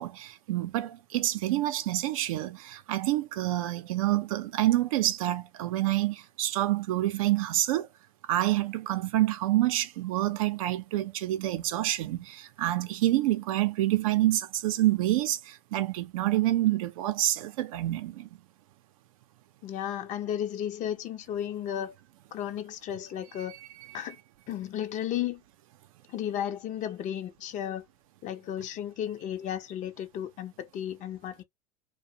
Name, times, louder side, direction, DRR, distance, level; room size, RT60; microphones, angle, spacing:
voice 1, 0.0-7.9 8.3-18.3, right 15 dB, 75° right, 0.5 m, -27 dB
voice 2, 19.6-21.9 22.3-23.6 23.9-24.2 24.5-25.4 26.1-27.9 28.2-31.4, left 10 dB, 45° left, 0.6 m, -34 dB
2.5 x 2.2 x 2.7 m
hypercardioid pair, 90°, 18 cm